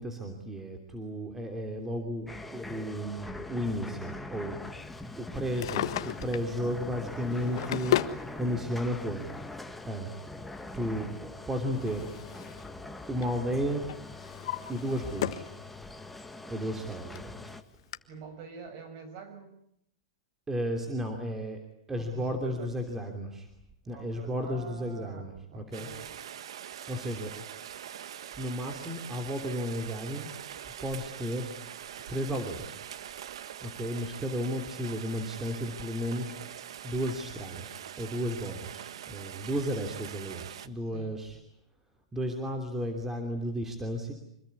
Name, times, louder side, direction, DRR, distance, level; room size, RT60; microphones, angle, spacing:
voice 1, 0.0-4.6 5.2-8.0 8.3-9.3 9.9-10.1 10.7-11.2 11.5-12.1 13.1-13.9 14.7-15.5 16.5-17.5 20.5-21.6 21.9-23.5 23.8-25.9 26.9-27.3 28.4-30.3 30.6-31.5 32.1-32.8 33.6-36.3 36.8-41.4 42.1-44.1, equal, 10° right, 4 dB, 3.0 m, -33 dB
sound 1, 2.3-17.6, left 2 dB, 5° left, 1.6 m, -43 dB
Drawer open or close, 5.4-6.5 7.2-8.2 9.3-9.4 11.2-12.7 13.0-13.4 13.9-15.6 16.0-16.1 16.8-16.9 17.1-17.2 17.9-18.0, left 13 dB, 60° left, 1.4 m, -34 dB
voice 2, 18.1-19.5 22.0-22.8 23.8-26.1 40.9-41.2, right 4 dB, 45° right, 9 dB, 7.2 m, -46 dB
Rain, 25.7-40.7, right 10 dB, 75° right, 1.4 m, -43 dB
26.0 x 20.5 x 9.7 m, 0.77 s
hypercardioid pair, 145°, 3 cm